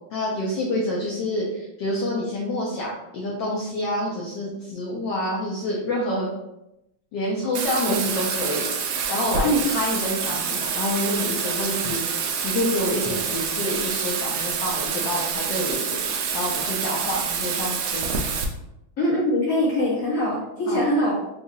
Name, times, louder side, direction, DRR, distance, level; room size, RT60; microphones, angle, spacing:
voice 1, 0.1-6.3 7.1-18.2 20.7-20.8, left 1 dB, 70° left, -3 dB, 1.2 m, -28 dB
Bathtub (filling or washing), 7.5-18.4, right 6 dB, 85° right, 0.8 m, -27 dB
voice 2, 19.0-21.1, equal, 45° left, -7 dB, 1.6 m, -22 dB
4.0 x 2.4 x 2.7 m, 0.89 s
omnidirectional pair, 2.3 m